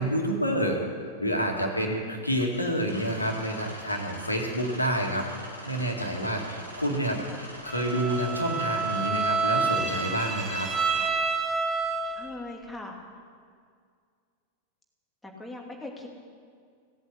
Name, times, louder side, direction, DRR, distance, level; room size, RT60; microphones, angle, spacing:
voice 1, 0.0-5.3 5.7-10.7, equal, 85° left, 2 dB, 2.1 m, -28 dB
sound 1, 2.4-11.1, equal, 85° right, 2.8 m, -43 dB
voice 2, 6.2-7.4 12.1-13.0 15.2-16.1, left 2 dB, 5° left, 0 dB, 2.5 m, -42 dB
Bowed string instrument, 7.7-12.4, right 4 dB, 20° right, 1.3 m, -28 dB
17.0 x 8.3 x 8.4 m, 2.1 s
figure-of-eight pair, 90°, 0 cm